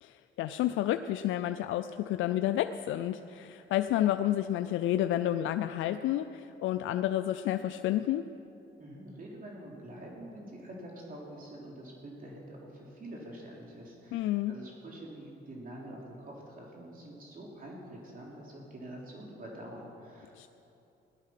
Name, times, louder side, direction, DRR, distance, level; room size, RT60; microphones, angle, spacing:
voice 1, 0.0-8.3 14.1-14.5 20.3-20.5, left 12 dB, 80° left, 10 dB, 0.4 m, -30 dB
voice 2, 8.8-20.5, right 1 dB, 45° right, -3 dB, 3.3 m, -46 dB
17.0 x 11.5 x 5.8 m, 2.8 s
cardioid pair, 90°, 20 cm